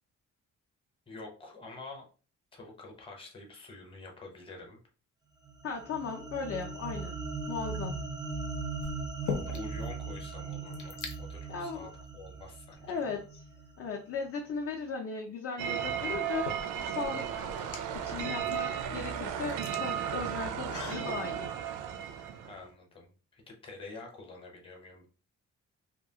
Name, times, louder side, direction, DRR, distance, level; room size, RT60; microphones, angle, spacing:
voice 1, 1.1-2.1 2.5-4.8 9.4-13.2 22.5-25.1, left 3 dB, 20° left, 0 dB, 0.7 m, -47 dB
sound 1, 5.5-13.9, right 4 dB, 15° right, 0.3 m, -39 dB
voice 2, 5.6-7.2 7.5-8.0 11.5-11.9 12.8-13.4 13.8-17.4 17.9-21.5, left 5 dB, 50° left, 1 dB, 0.4 m, -37 dB
sound 2, 7.6-8.0 8.8-9.9 10.2-10.3 10.5-11.2 12.0-12.1 12.7-13.6 15.3-15.4 16.1-21.1, left 5 dB, 80° left, 0.8 m, -42 dB
sound 3, 15.6-22.6, right 9 dB, 90° right, 0.5 m, -35 dB
2.8 x 2.4 x 2.8 m, 0.36 s
cardioid pair, 165°, 30 cm